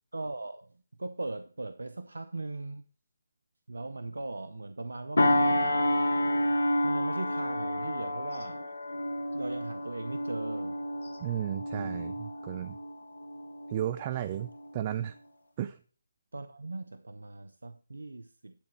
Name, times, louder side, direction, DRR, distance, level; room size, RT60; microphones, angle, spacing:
voice 1, 0.1-0.7 1.0-2.8 3.7-6.3 6.8-8.6 9.3-10.8 11.7-12.1 16.3-18.5, right 2 dB, 85° right, 0.7 m, -39 dB
sound 1, 5.2-14.0 14.5-14.7, left 1 dB, 70° left, 1.4 m, -30 dB
voice 2, 11.2-12.8 13.7-15.2 15.6-15.8, right 11 dB, 30° right, 0.5 m, -34 dB
10.5 x 4.2 x 6.1 m
figure-of-eight pair, 155°, 0 cm